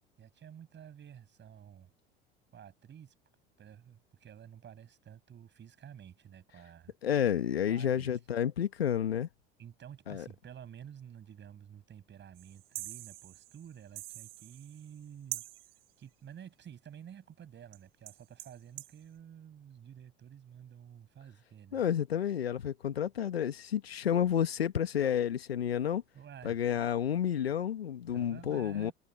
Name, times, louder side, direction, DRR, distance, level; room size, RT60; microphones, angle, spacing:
voice 1, 0.2-1.9 2.5-3.1 3.6-6.9 7.7-8.2 9.6-15.4 16.0-21.8 26.1-26.6 28.1-28.9, right 9 dB, 40° right, 7.1 m, -51 dB
voice 2, 7.0-9.3 10.1-10.2 21.7-26.0 26.4-28.9, left 9 dB, 85° left, 1.6 m, -30 dB
sound 1, 12.4-15.1 15.3-15.9 17.7-17.8 18.1-19.0, right 17 dB, 75° right, 2.1 m, -44 dB
hypercardioid pair, 70°, 30 cm